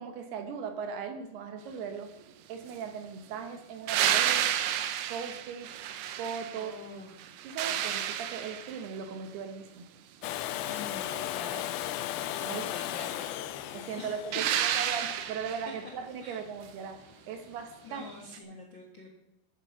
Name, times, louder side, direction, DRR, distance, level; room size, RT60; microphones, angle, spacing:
voice 1, 0.0-2.1 2.5-4.5 5.1-5.7 6.2-6.7 7.4-9.8 12.4-12.7 13.7-17.0 17.3-18.1 18.4-18.6, right 6 dB, 70° right, 8 dB, 2.8 m, -38 dB
sound 1, 3.9-6.8 7.2-9.0 14.3-15.8 18.3-18.4, right 11 dB, 90° right, 3.3 m, -30 dB
voice 2, 6.5-7.1 10.5-11.9 12.4-13.5 14.0-14.2 16.2-16.4 17.8-19.1, left 2 dB, 50° left, 0 dB, 1.4 m, -46 dB
Domestic sounds home sounds, 10.2-16.0 18.0-18.1, left 13 dB, 85° left, 2.2 m, -36 dB
13.5 x 9.5 x 5.9 m, 0.89 s
omnidirectional pair, 5.2 m